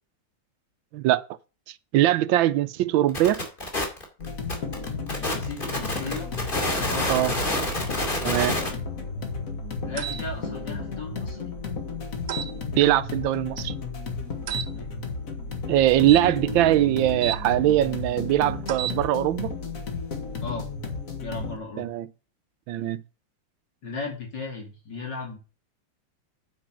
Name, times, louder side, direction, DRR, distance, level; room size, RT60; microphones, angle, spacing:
voice 1, 1.9-3.4 7.1-7.3 8.2-8.6 12.8-13.7 15.7-19.5 21.8-22.1 22.7-23.0, right 13 dB, 85° right, 1.4 m, -21 dB
sound 1, 3.1-8.7, left 1 dB, 25° left, 2.5 m, -28 dB
sound 2, 4.2-21.6, left 4 dB, 50° left, 1.8 m, -33 dB
voice 2, 5.2-6.3 6.9-7.1 9.8-11.4 14.6-14.9 20.4-20.7 21.2-21.9 23.8-25.4, left 3 dB, 65° left, 3.3 m, -36 dB
sound 3, 10.0-10.2 12.3-12.5 14.5-14.7 16.0-17.4 18.6-19.0, right 9 dB, 70° right, 1.1 m, -31 dB
9.2 x 4.8 x 6.1 m
omnidirectional pair, 2.1 m